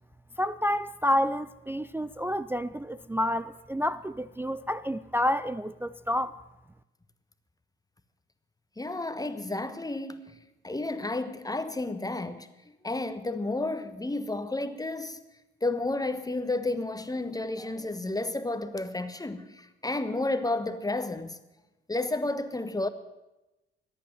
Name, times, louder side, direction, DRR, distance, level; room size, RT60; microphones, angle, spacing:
voice 1, 0.4-6.4, left 1 dB, 5° right, 0.4 m, -29 dB
voice 2, 8.8-10.4 10.6-12.5 12.8-15.2 15.6-21.4 21.9-22.9, left 2 dB, 10° left, 1.3 m, -31 dB
14.5 x 10.0 x 7.7 m
hypercardioid pair, 50°, 30 cm